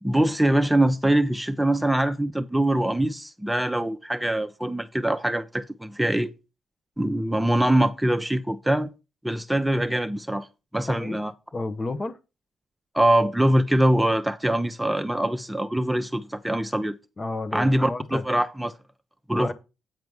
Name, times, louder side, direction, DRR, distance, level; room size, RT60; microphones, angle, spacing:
voice 1, 0.0-6.3 7.0-8.9 9.2-10.5 10.7-11.3 12.9-17.0 17.5-18.7 19.3-19.5, right 1 dB, 5° right, 0.8 m, -23 dB
voice 2, 11.5-12.2 17.2-18.2 19.3-19.5, left 2 dB, 35° left, 1.0 m, -31 dB
9.1 x 4.6 x 5.4 m
supercardioid pair, 55°, 0 cm